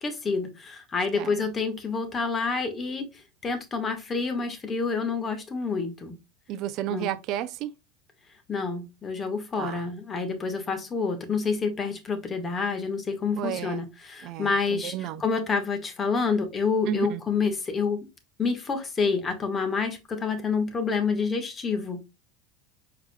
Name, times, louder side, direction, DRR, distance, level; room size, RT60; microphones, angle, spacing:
voice 1, 0.0-3.1 3.4-6.2 6.9-7.1 8.5-18.1 18.4-22.0, left 4 dB, 30° left, 1.4 m, -28 dB
voice 2, 6.5-7.7 9.6-9.8 13.4-13.8 14.2-15.2 16.8-17.2, right 10 dB, 55° right, 0.4 m, -32 dB
4.8 x 4.6 x 2.2 m
hypercardioid pair, 90°, 0 cm